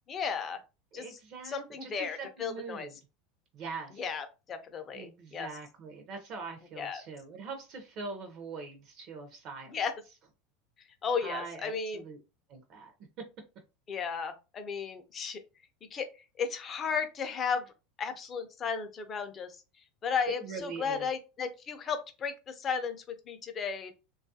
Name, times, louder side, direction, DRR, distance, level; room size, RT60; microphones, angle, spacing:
voice 1, 0.1-0.6 0.9-1.2 1.4-2.9 4.0-5.5 6.8-7.0 9.7-9.9 11.0-12.0 13.9-15.4 15.9-16.1 16.4-17.7 18.0-19.6 20.0-23.9, left 6 dB, 25° left, 0.4 m, -34 dB
voice 2, 0.9-3.0 3.5-4.0 4.9-9.7 11.2-12.2 12.5-12.9 20.4-21.1, right 4 dB, 40° right, 0.5 m, -43 dB
3.0 x 2.3 x 2.6 m
supercardioid pair, 160°, 0 cm